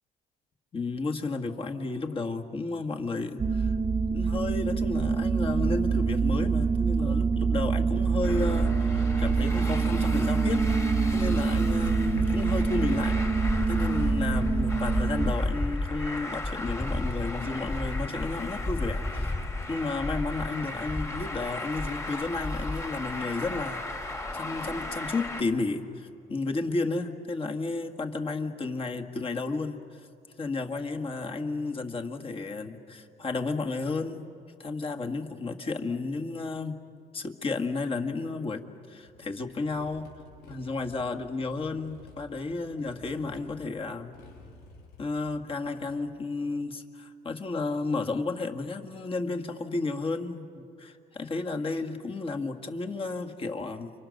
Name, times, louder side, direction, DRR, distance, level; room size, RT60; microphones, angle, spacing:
voice 1, 0.7-3.8 4.1-10.7 11.1-13.2 13.5-19.4 19.7-30.1 30.4-36.8 37.1-40.1 40.5-44.2 45.0-53.9, left 3 dB, 30° left, 3 dB, 1.9 m, -32 dB
sound 1, 3.4-15.3, right 5 dB, 30° right, 0.9 m, -26 dB
Traffic noise roadway noise, 8.2-25.4, left 2 dB, 15° left, 2.3 m, -33 dB
Motorcycle, 39.0-45.9, left 2 dB, 85° left, 4.8 m, -52 dB
30.0 x 25.5 x 6.6 m, 2.5 s
cardioid pair, 110°, 17 cm